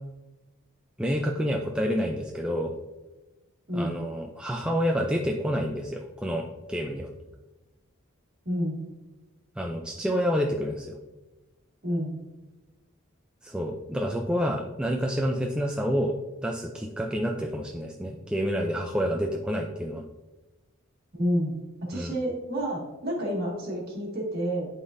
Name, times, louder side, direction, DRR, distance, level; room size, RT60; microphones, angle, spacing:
voice 1, 1.0-2.7 3.7-7.1 9.6-10.9 13.4-16.1 16.4-20.0 21.9-22.1, equal, 5° right, 0 dB, 0.3 m, -28 dB
voice 2, 8.5-8.8 11.8-12.1 21.1-24.7, equal, 45° right, -3 dB, 1.9 m, -29 dB
11.0 x 4.0 x 2.6 m, 1.1 s
head